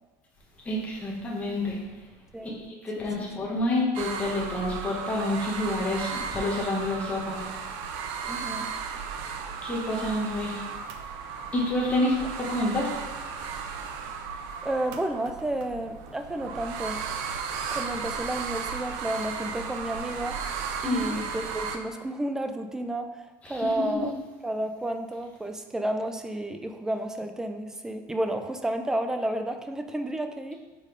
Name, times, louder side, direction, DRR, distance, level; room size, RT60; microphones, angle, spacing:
voice 1, 0.6-1.8 2.4-2.5 2.8-7.4 9.6-10.6 11.5-12.1 12.5-13.0 20.8-21.1 23.4-23.6 23.9-24.0, left 1 dB, 15° left, -5 dB, 1.2 m, -28 dB
voice 2, 3.0-3.3 8.3-8.7 14.6-17.0 17.7-20.4 20.8-23.2 23.5-24.1 24.4-30.6, right 1 dB, 5° right, 6 dB, 0.4 m, -31 dB
sound 1, 3.9-21.8, right 6 dB, 70° right, 0.6 m, -35 dB
5.3 x 4.0 x 5.0 m, 1.3 s
cardioid pair, 150°, 9 cm